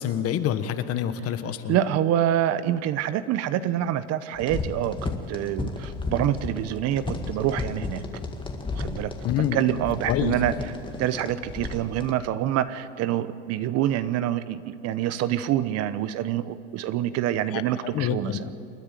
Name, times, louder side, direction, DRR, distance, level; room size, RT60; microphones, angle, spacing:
voice 1, 0.0-1.8 9.2-9.6 10.1-10.3 17.5-18.4, left 10 dB, 45° left, 10 dB, 1.4 m, -27 dB
voice 2, 1.7-8.0 8.7-10.5 11.0-18.4, right 11 dB, 50° right, 14 dB, 1.0 m, -26 dB
sound 1, 4.3-12.1, left 3 dB, 15° left, 1.8 m, -33 dB
28.0 x 10.0 x 9.2 m, 2.6 s
supercardioid pair, 105°, 34 cm